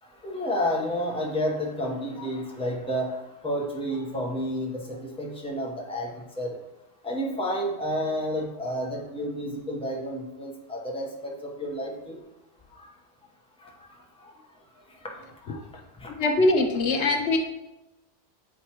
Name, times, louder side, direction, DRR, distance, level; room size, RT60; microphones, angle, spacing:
voice 1, 0.0-6.6 7.0-12.2 12.7-12.9 13.6-16.3, equal, 5° left, -2 dB, 0.9 m, -31 dB
voice 2, 16.2-17.4, left 2 dB, 70° left, 3 dB, 1.0 m, -22 dB
7.8 x 4.9 x 3.0 m, 0.96 s
omnidirectional pair, 1.2 m